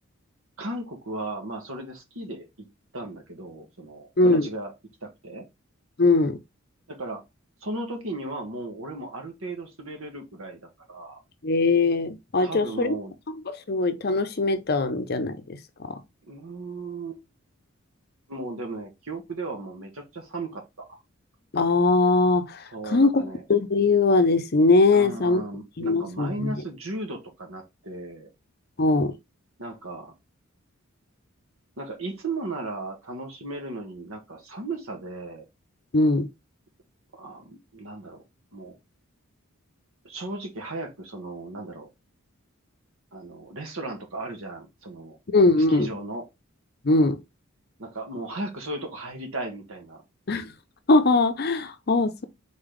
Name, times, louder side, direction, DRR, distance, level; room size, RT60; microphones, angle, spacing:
voice 1, 0.6-2.7 2.9-4.7 5.0-5.4 6.9-7.2 7.6-11.2 12.4-13.2 16.3-17.2 18.3-21.0 22.7-23.4 24.9-28.3 29.6-30.1 31.8-35.4 37.1-38.2 38.5-38.7 40.0-41.9 43.1-45.2 45.6-46.3 47.8-50.0, right 2 dB, 75° right, 1.5 m, -36 dB
voice 2, 4.2-4.5 6.0-6.4 11.4-12.9 13.7-15.4 21.5-22.6 22.8-25.4 25.8-26.5 28.8-29.1 35.9-36.3 45.3-45.9 46.8-47.2 50.3-50.5 50.9-52.3, left 3 dB, 45° left, 0.6 m, -21 dB
3.9 x 3.3 x 3.9 m
head